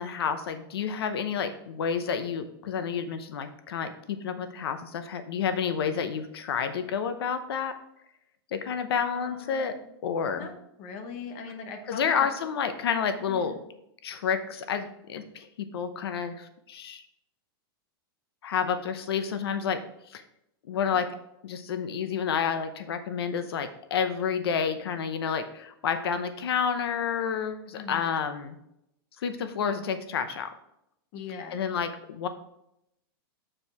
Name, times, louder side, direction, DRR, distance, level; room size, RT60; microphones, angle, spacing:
voice 1, 0.0-7.7 8.5-9.7 10.0-10.5 11.9-13.6 14.0-17.0 18.4-19.8 20.1-20.2 20.7-21.1 21.4-28.6 29.2-30.5 31.5-32.3, left 7 dB, 80° left, 9 dB, 0.8 m, -30 dB
voice 2, 9.1-9.7 10.3-10.5 10.8-12.3 13.3-13.6 20.7-21.0 27.7-28.1 31.1-31.6, left 5 dB, 35° left, 5 dB, 1.0 m, -41 dB
7.6 x 4.5 x 4.8 m, 0.81 s
supercardioid pair, 175°, 13 cm